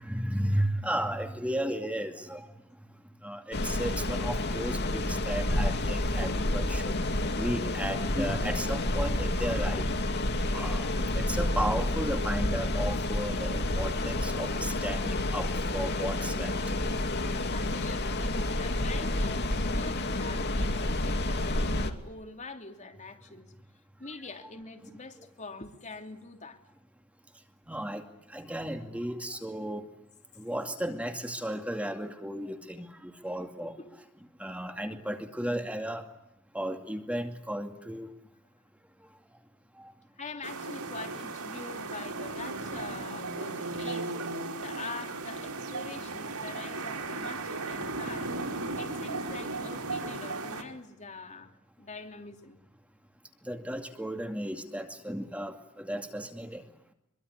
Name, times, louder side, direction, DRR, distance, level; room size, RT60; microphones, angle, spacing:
voice 1, 0.0-9.9 10.5-16.6 27.3-29.9 30.3-33.7 34.4-36.1 36.5-38.1 39.0-39.4 39.7-39.9 41.5-41.6 53.4-56.7, right 1 dB, 5° right, 5 dB, 2.3 m, -34 dB
sound 1, 3.5-21.9, left 1 dB, 50° left, 2.6 m, -29 dB
voice 2, 17.5-23.5 24.0-26.6 33.8-34.0 40.2-44.2 44.6-48.3 48.8-52.6, left 3 dB, 35° left, 5 dB, 3.0 m, -44 dB
sound 2, 40.4-50.6, right 3 dB, 90° right, 4.8 m, -36 dB
25.5 x 23.5 x 9.9 m, 0.77 s
head